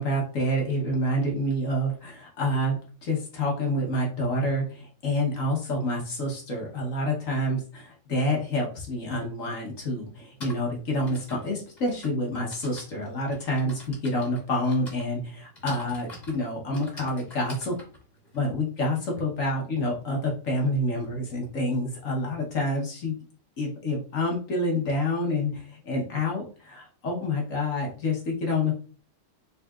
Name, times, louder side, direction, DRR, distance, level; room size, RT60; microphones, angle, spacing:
voice 1, 0.0-17.7 18.3-23.2 23.6-28.7, left 1 dB, 55° left, -1 dB, 1.0 m, -28 dB
Typing, 9.0-9.1 10.1-19.2, left 1 dB, 25° left, 1.1 m, -46 dB
3.9 x 3.6 x 2.3 m, 0.40 s
omnidirectional pair, 2.4 m